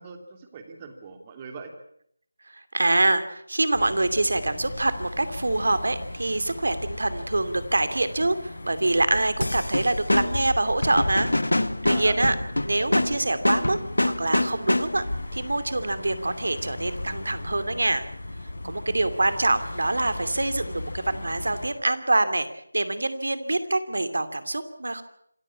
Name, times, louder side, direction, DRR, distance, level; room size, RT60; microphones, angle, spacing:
voice 1, 0.0-1.7 11.9-12.2, right 5 dB, 20° right, 6 dB, 2.8 m, -41 dB
voice 2, 2.5-11.3 11.8-12.4 12.6-15.0 15.3-18.1 18.6-22.5 22.7-25.0, right 2 dB, 70° right, 11 dB, 2.7 m, -25 dB
sound 1, 3.7-21.7, left 2 dB, 65° left, 7.0 m, -37 dB
sound 2, 9.4-15.2, left 1 dB, 85° left, 1.2 m, -26 dB
26.5 x 14.5 x 8.6 m, 0.69 s
figure-of-eight pair, 165°, 0 cm